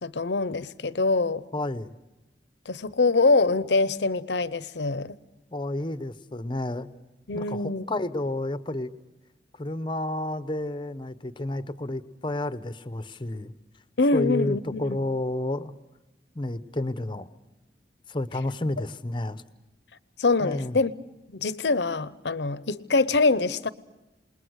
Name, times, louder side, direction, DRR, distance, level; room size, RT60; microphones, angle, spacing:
voice 1, 0.0-1.4 2.7-5.2 7.3-7.8 14.0-15.0 20.2-20.9 21.3-23.7, left 3 dB, 75° left, 0.8 m, -24 dB
voice 2, 1.5-2.0 5.5-6.9 7.3-8.9 9.5-13.5 14.1-15.7 16.3-17.3 18.1-19.4 20.4-20.8, left 1 dB, 25° left, 0.8 m, -30 dB
28.0 x 21.0 x 6.4 m
head